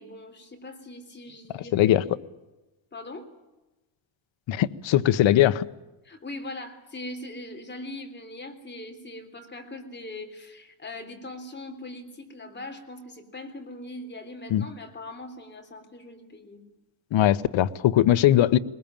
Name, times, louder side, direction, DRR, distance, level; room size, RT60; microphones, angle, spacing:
voice 1, 0.0-2.0 2.9-3.3 6.0-16.6, left 2 dB, 20° left, 3.5 m, -41 dB
voice 2, 1.7-2.0 4.5-5.6 14.5-14.6 17.1-18.6, left 12 dB, 65° left, 1.0 m, -20 dB
21.5 x 20.5 x 8.9 m
cardioid pair, 155°, 49 cm